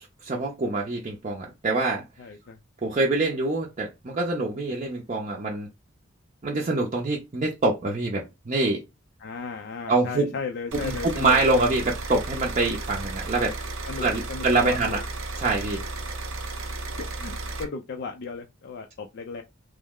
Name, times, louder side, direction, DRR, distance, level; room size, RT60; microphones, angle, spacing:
voice 1, 0.2-2.0 2.8-5.7 6.4-8.8 9.9-10.3 10.7-13.6 14.0-15.0 15.4-15.8, right 3 dB, 35° right, 0.5 m, -25 dB
voice 2, 2.2-2.6 9.2-11.6 13.9-15.0 17.0-19.4, left 5 dB, 55° left, 0.4 m, -35 dB
sound 1, 10.7-17.6, right 2 dB, 75° right, 0.8 m, -34 dB
3.2 x 2.0 x 3.5 m
head